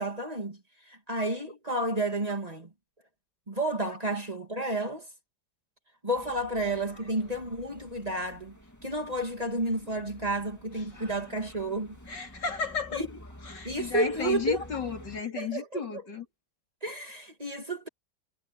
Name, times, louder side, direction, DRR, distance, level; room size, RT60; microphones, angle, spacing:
voice 1, 0.0-2.7 3.5-5.1 6.0-12.0 12.9-13.1 13.6-14.6 15.4-15.8 16.8-17.9, right 1 dB, 20° right, 2.3 m, -31 dB
sound 1, 6.1-15.2, equal, 10° left, 2.2 m, -50 dB
voice 2, 12.1-13.0 13.4-16.3, left 5 dB, 80° left, 3.9 m, -33 dB
omnidirectional pair, 1.9 m